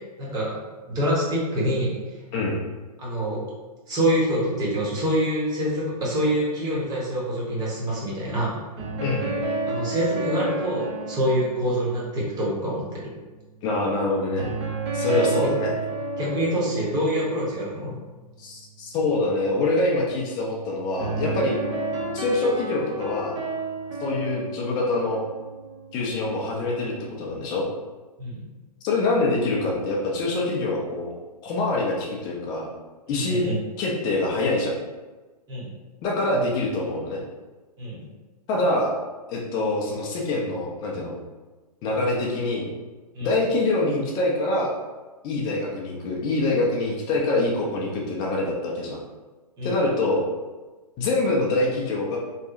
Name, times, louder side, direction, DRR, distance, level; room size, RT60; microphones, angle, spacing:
voice 1, 0.2-0.6 0.9-2.0 3.0-3.4 3.9-8.6 9.7-13.1 15.1-15.2 16.2-18.0 28.2-28.4 33.1-33.6 35.5-35.7 37.8-38.0 43.1-43.3 49.6-49.8, equal, 20° right, -6 dB, 0.9 m, -26 dB
sound 1, 8.8-13.6 14.4-18.1 21.0-26.5, right 2 dB, 45° right, 0.5 m, -32 dB
voice 2, 9.0-9.4 13.6-14.5 14.9-15.7 18.4-21.6 22.1-23.4 24.0-25.2 25.9-26.9 27.2-27.7 28.8-31.1 31.4-32.7 33.1-33.4 33.8-34.7 36.0-37.2 38.5-38.9 39.3-41.1 41.8-42.7 43.2-44.7 45.2-49.0 49.6-50.2 51.0-52.2, left 2 dB, 20° left, -2 dB, 0.4 m, -25 dB
2.8 x 2.2 x 2.5 m, 1.2 s
figure-of-eight pair, 120°, 21 cm